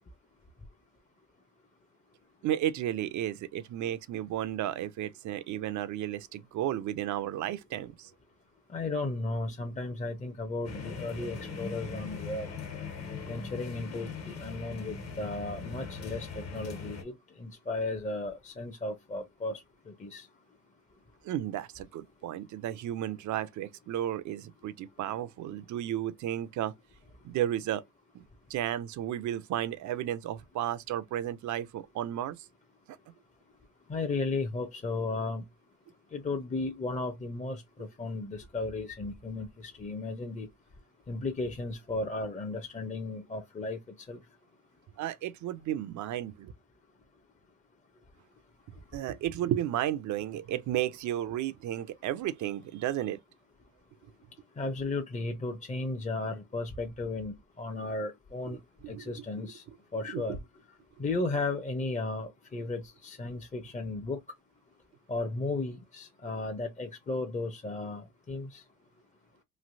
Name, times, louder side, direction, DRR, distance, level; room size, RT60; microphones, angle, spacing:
voice 1, 2.4-8.1 21.2-26.7 27.2-27.8 28.1-28.2 28.5-32.5 45.0-46.5 48.9-53.2 58.5-58.6 58.8-59.1 60.1-60.4, right 12 dB, 70° right, 0.5 m, -33 dB
voice 2, 8.7-12.5 13.3-20.3 33.9-35.4 36.1-40.5 41.1-43.8 44.1-44.2 54.6-58.6 58.9-59.6 59.9-60.4 61.0-64.2 65.1-68.6, left 3 dB, 25° left, 0.6 m, -35 dB
sound 1, 10.6-17.0, left 4 dB, 55° left, 1.3 m, -40 dB
3.2 x 2.6 x 2.5 m
cardioid pair, 90°, 30 cm